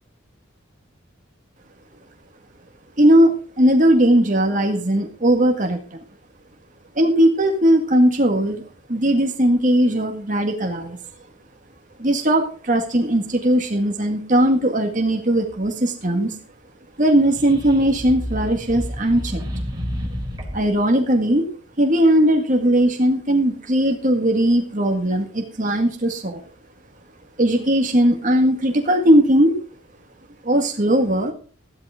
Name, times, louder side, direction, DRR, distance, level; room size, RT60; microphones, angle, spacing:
voice 1, 3.0-5.8 7.0-11.0 12.0-16.3 17.0-19.4 20.5-21.5 21.8-26.4 27.4-29.6 30.4-31.3, right 1 dB, 40° right, 3 dB, 1.9 m, -18 dB
sound 1, 17.1-20.8, equal, 20° right, 3.2 m, -30 dB
14.0 x 12.0 x 3.8 m, 0.40 s
head